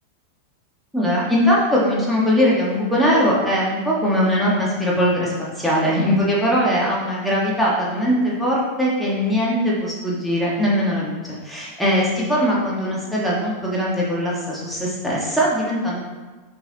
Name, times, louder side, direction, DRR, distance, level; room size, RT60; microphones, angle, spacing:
voice 1, 0.9-16.0, equal, ahead, -7 dB, 1.6 m, -20 dB
7.6 x 4.7 x 3.0 m, 1.3 s
figure-of-eight pair, 90°, 0 cm